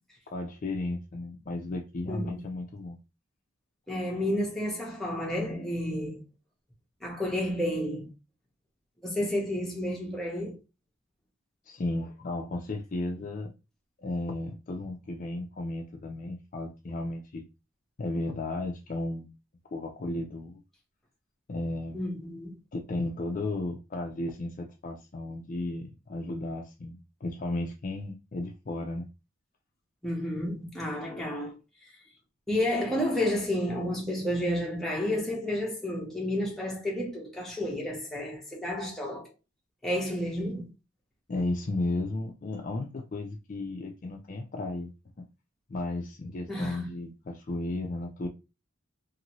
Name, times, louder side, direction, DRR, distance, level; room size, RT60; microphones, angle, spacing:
voice 1, 0.3-3.0 11.7-13.5 14.0-17.5 18.0-19.3 19.7-20.6 21.5-22.0 22.7-29.1 41.3-44.9 45.7-48.3, left 2 dB, 40° left, 0.4 m, -34 dB
voice 2, 2.1-2.4 3.9-6.2 7.0-8.1 9.0-10.6 21.9-22.6 30.0-31.6 32.5-39.3 39.8-40.7 46.5-46.9, left 1 dB, ahead, 0.7 m, -31 dB
2.7 x 2.6 x 2.9 m
head